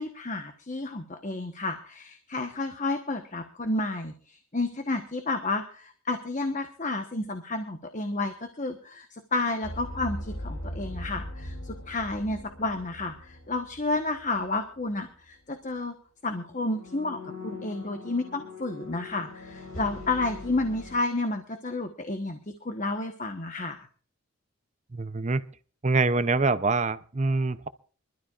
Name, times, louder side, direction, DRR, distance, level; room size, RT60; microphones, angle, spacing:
voice 1, 0.0-15.9 16.2-23.9, left 2 dB, 35° left, 1.2 m, -31 dB
sound 1, 9.6-14.5 14.7-15.0 16.4-21.0, left 1 dB, 85° left, 5.6 m, -40 dB
voice 2, 24.9-25.4 25.8-27.7, right 3 dB, 30° right, 0.7 m, -25 dB
25.5 x 13.0 x 2.5 m
head